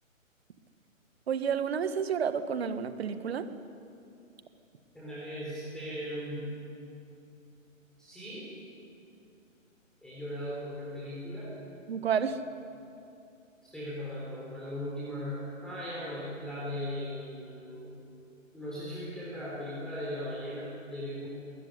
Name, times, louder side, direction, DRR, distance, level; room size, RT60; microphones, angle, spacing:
voice 1, 1.3-3.5 11.9-12.4, right 7 dB, 50° right, 10 dB, 1.7 m, -30 dB
voice 2, 4.9-6.5 8.0-8.5 10.0-11.6 13.6-18.0 18.5-21.3, equal, ahead, -7 dB, 3.9 m, -38 dB
21.0 x 18.5 x 9.9 m, 2.6 s
hypercardioid pair, 150°, 40 cm